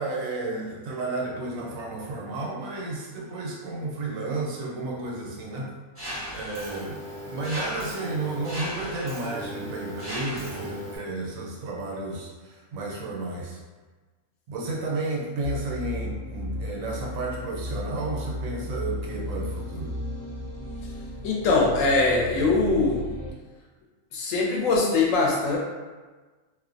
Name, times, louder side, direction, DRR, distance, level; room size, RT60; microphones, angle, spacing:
voice 1, 0.0-5.7 6.3-13.6 14.5-19.9, right 2 dB, 85° right, -2 dB, 1.0 m, -32 dB
Mechanisms, 6.0-11.0, equal, 20° right, 0.3 m, -36 dB
sound 1, 15.4-23.3, left 1 dB, 45° left, 0.6 m, -35 dB
voice 2, 21.2-23.0 24.1-25.6, left 3 dB, 75° left, -2 dB, 1.0 m, -22 dB
2.5 x 2.1 x 2.5 m, 1.3 s
omnidirectional pair, 1.4 m